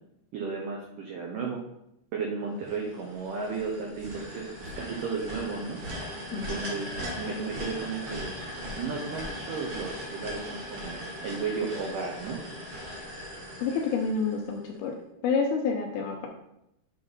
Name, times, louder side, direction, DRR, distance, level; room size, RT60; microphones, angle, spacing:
voice 1, 0.3-1.6 2.1-5.8 6.3-6.9 7.2-8.3 8.8-12.4, right 5 dB, 85° right, 0 dB, 1.8 m, -34 dB
sound 1, 2.6-14.7, equal, 55° right, 1.7 m, -39 dB
voice 2, 6.3-6.8 13.6-14.9 15.2-16.3, left 5 dB, 80° left, 2 dB, 2.4 m, -28 dB
8.4 x 4.0 x 5.3 m, 0.82 s
omnidirectional pair, 5.1 m